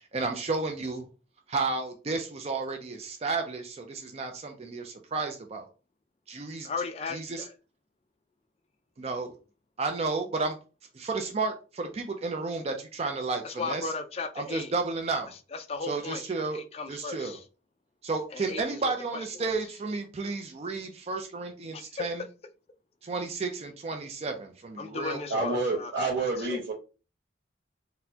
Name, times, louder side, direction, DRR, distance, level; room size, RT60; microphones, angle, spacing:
voice 1, 0.1-1.0 1.5-5.7 6.3-6.7 7.1-7.4 9.0-9.3 9.8-10.6 10.9-13.9 14.4-15.3 15.9-16.6 16.9-17.4 18.0-22.2 23.0-25.4, right 3 dB, 35° right, 5 dB, 0.4 m, -32 dB
voice 2, 6.6-7.5 13.4-14.7 15.5-16.2 16.5-17.4 18.3-18.8 19.1-19.5 21.7-21.9 24.8-25.9 26.4-26.7, left 4 dB, 35° left, 7 dB, 0.3 m, -36 dB
voice 3, 25.3-26.7, right 3 dB, 90° right, -5 dB, 0.8 m, -28 dB
4.2 x 2.1 x 2.7 m, 0.34 s
head